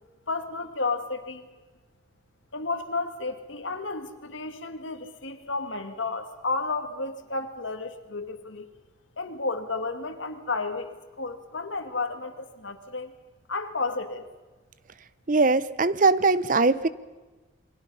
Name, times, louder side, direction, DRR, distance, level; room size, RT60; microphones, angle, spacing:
voice 1, 0.3-1.5 2.5-8.7 9.2-10.9 11.2-13.1 13.5-14.2, left 3 dB, 80° left, 7 dB, 2.1 m, -32 dB
voice 2, 15.3-16.9, right 3 dB, 40° right, 16 dB, 0.7 m, -21 dB
28.0 x 23.0 x 5.6 m, 1.2 s
head